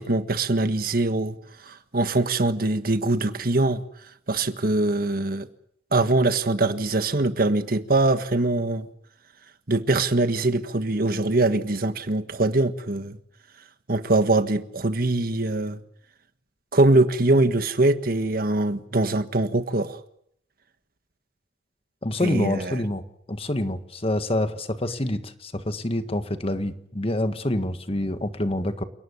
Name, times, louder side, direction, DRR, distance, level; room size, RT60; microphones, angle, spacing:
voice 1, 0.0-1.4 1.6-3.8 4.3-5.5 5.9-8.9 9.7-13.2 13.9-15.8 16.7-20.0 22.2-22.8, right 2 dB, 55° right, 1.6 m, -23 dB
voice 2, 22.0-28.8, left 1 dB, 35° left, 1.7 m, -27 dB
28.5 x 19.0 x 8.4 m
head